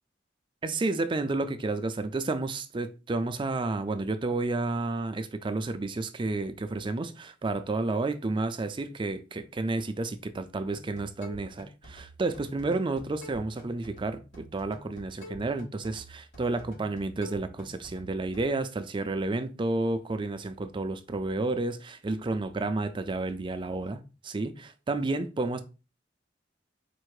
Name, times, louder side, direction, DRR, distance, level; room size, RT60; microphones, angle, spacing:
voice 1, 0.6-25.6, right 2 dB, 25° right, 0.4 m, -31 dB
sound 1, 10.7-18.4, equal, 80° left, 2.9 m, -48 dB
4.5 x 2.5 x 4.7 m
head